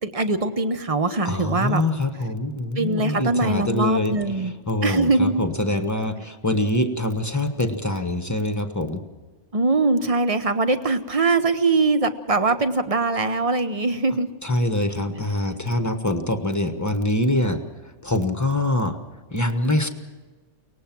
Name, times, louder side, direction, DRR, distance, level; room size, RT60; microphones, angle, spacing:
voice 1, 0.0-1.8 2.8-4.5 4.8-5.4 9.5-14.3, right 3 dB, 30° right, 10 dB, 0.9 m, -22 dB
voice 2, 1.2-9.0 14.4-19.0 19.3-19.9, left 1 dB, 15° left, 7 dB, 1.2 m, -24 dB
23.5 x 19.0 x 6.0 m, 1.3 s
omnidirectional pair, 1.3 m